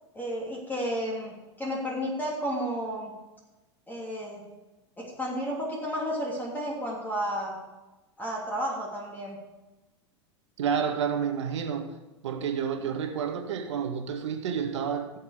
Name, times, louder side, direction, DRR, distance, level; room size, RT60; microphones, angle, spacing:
voice 1, 0.1-3.1 3.9-4.4 5.0-7.6 8.2-9.4, equal, 10° left, 3.2 m, -32 dB
voice 2, 10.6-11.9 12.2-15.2, right 7 dB, 75° right, 1.9 m, -30 dB
16.0 x 7.1 x 5.1 m
hypercardioid pair, 105°, 15 cm